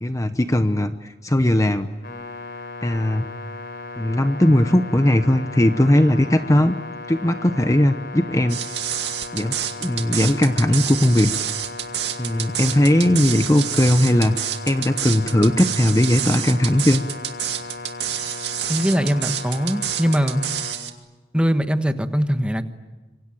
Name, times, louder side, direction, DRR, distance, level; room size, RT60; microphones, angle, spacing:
voice 1, 0.0-1.9 2.8-3.2 4.0-6.8 7.1-8.6 9.3-11.3 12.2-17.0, left 1 dB, 20° left, 9 dB, 0.8 m, -18 dB
sound 1, 2.0-20.7, left 3 dB, 60° left, 4.9 m, -36 dB
sound 2, 8.5-20.9, right 11 dB, 80° right, 2.2 m, -28 dB
voice 2, 18.7-20.5 21.3-22.7, equal, 5° right, 9 dB, 1.3 m, -21 dB
26.5 x 24.5 x 9.0 m, 1.2 s
head